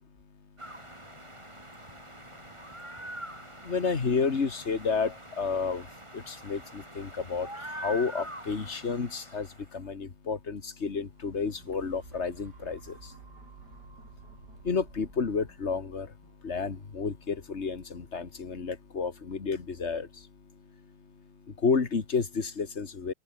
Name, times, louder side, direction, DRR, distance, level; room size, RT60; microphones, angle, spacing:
sound 1, 0.6-9.7, right 1 dB, 15° right, 5.1 m, -44 dB
voice 1, 3.7-5.8 6.3-7.5 7.8-9.5 9.7-12.8 14.7-16.1 16.4-20.1 21.6-23.1, left 5 dB, 40° left, 2.2 m, -30 dB
sound 2, 10.9-19.0 19.5-19.6, right 4 dB, 80° right, 4.2 m, -53 dB
open air
omnidirectional pair, 1.8 m